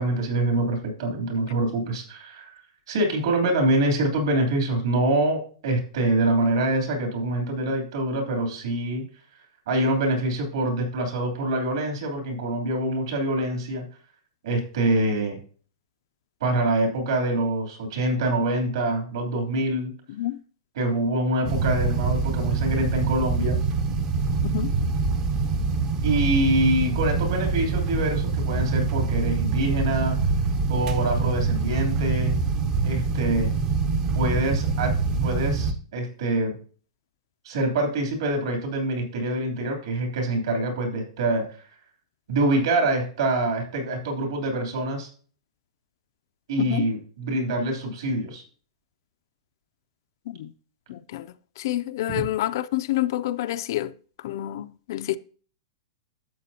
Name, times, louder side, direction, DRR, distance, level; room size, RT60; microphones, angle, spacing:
voice 1, 0.0-2.5 2.9-9.0 9.7-13.8 14.4-15.4 16.4-19.9 20.7-23.6 26.0-30.2 30.7-32.5 32.8-33.5 34.1-36.6 37.4-41.5 42.3-45.1 46.5-48.4 52.1-52.3, right 1 dB, 60° right, 3.0 m, -25 dB
sound 1, 21.4-35.7, right 4 dB, 20° right, 0.5 m, -25 dB
voice 2, 50.9-51.3 51.6-53.9 54.2-55.2, left 14 dB, 40° left, 0.3 m, -28 dB
11.5 x 7.6 x 2.8 m
supercardioid pair, 180°, 3 cm